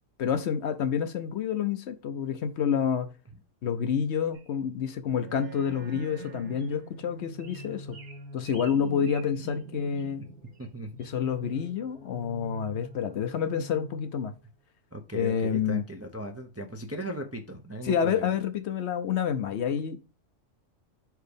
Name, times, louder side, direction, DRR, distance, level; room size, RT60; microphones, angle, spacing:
voice 1, 0.2-3.1 3.6-8.0 8.3-10.2 11.0-14.3 15.1-15.8 17.8-20.0, left 7 dB, 65° left, 0.9 m, -28 dB
sound 1, 4.3-4.5 5.4-5.5 6.1-6.3 6.6-6.8 7.4-9.6 9.9-10.1 10.5-10.7 11.0-11.1, right 4 dB, 90° right, 1.7 m, -51 dB
sound 2, 5.0-14.4, equal, 50° right, 1.6 m, -46 dB
voice 2, 8.7-9.1 10.6-10.9 14.9-18.4, right 1 dB, 20° right, 0.4 m, -38 dB
4.6 x 4.6 x 5.1 m
omnidirectional pair, 1.3 m